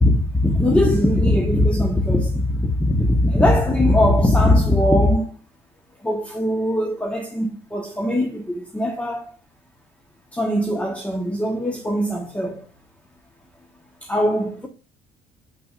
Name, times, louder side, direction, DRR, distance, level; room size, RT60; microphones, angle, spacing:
voice 1, 0.0-5.3 6.0-9.3 10.3-12.6 14.0-14.7, left 1 dB, 10° left, 1.1 m, -20 dB
7.9 x 6.0 x 2.5 m
cardioid pair, 110°, 17 cm